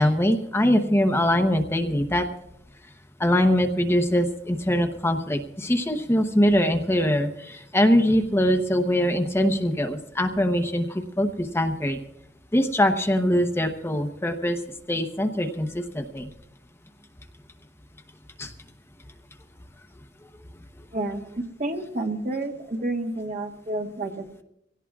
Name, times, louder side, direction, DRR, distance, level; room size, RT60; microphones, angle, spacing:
voice 1, 0.0-2.2 3.2-12.0 12.5-14.6 14.9-16.3 18.4-18.5, equal, 15° left, 6 dB, 0.8 m, -22 dB
voice 2, 21.6-24.4, right 2 dB, 50° right, 3 dB, 1.5 m, -30 dB
23.5 x 17.5 x 2.4 m, 0.79 s
head